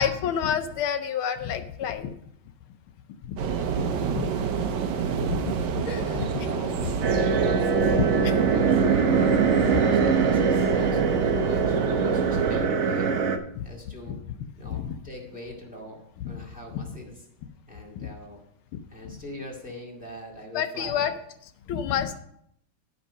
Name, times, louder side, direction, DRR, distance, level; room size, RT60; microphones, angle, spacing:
voice 1, 0.0-2.1 3.3-3.4 4.1-4.3 5.2-6.6 7.5-7.6 8.0-8.3 8.7-8.8 9.7-10.1 13.6-13.7 14.1-14.2 14.7-15.0 16.2-16.4 16.7-16.9 19.0-19.2 20.5-21.1 21.7-22.2, left 8 dB, 80° left, 8 dB, 1.5 m, -29 dB
sound 1, 3.4-12.6, right 7 dB, 65° right, 1.3 m, -29 dB
voice 2, 6.1-13.1 13.6-14.2 14.6-17.2 17.7-18.4 18.9-21.1, left 1 dB, 5° right, -2 dB, 1.7 m, -42 dB
sound 2, 7.0-13.4, right 5 dB, 80° right, 0.6 m, -22 dB
11.0 x 5.4 x 5.5 m, 0.70 s
omnidirectional pair, 2.3 m